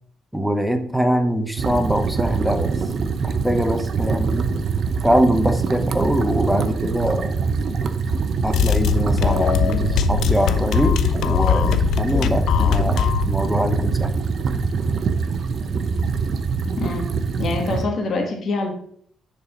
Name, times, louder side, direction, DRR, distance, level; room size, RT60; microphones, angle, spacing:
voice 1, 0.3-2.7 3.2-4.5 5.0-7.3 8.4-14.1, equal, ahead, 6 dB, 0.9 m, -23 dB
sound 1, 1.6-17.8, right 5 dB, 55° right, 0.7 m, -24 dB
sound 2, 8.5-13.3, left 8 dB, 75° left, 0.5 m, -21 dB
voice 2, 17.4-18.7, left 3 dB, 55° left, 3 dB, 1.4 m, -24 dB
6.8 x 4.2 x 5.4 m, 0.62 s
cardioid pair, 90°, 0 cm